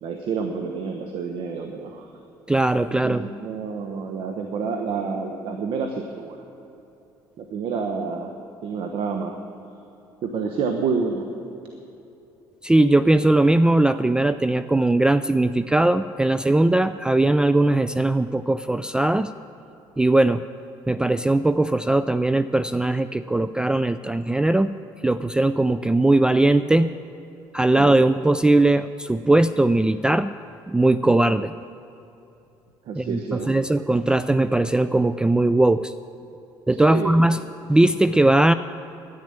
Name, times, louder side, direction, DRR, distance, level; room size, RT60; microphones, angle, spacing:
voice 1, 0.0-2.1 3.0-6.4 7.4-8.3 8.6-9.4 10.2-11.3 32.9-33.6 36.7-37.1, right 5 dB, 65° right, 4 dB, 1.1 m, -28 dB
voice 2, 2.5-3.2 12.6-19.3 20.0-20.4 20.9-24.7 25.0-26.9 27.5-30.3 30.7-31.5 32.9-35.9 36.7-37.4 37.7-38.5, right 2 dB, 10° right, 13 dB, 0.3 m, -19 dB
10.5 x 10.0 x 9.0 m, 2.9 s
supercardioid pair, 80°, 10 cm